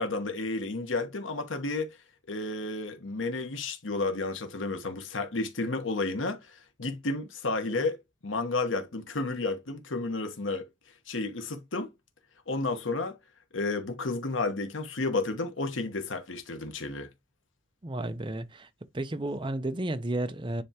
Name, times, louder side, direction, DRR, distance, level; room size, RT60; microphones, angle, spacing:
voice 1, 0.0-2.0 2.3-8.0 8.2-10.7 11.1-11.9 12.5-13.2 13.5-17.1, left 3 dB, 85° left, 1.2 m, -31 dB
voice 2, 17.8-18.7 18.9-20.6, right 1 dB, 25° right, 0.7 m, -32 dB
9.8 x 3.5 x 2.9 m
head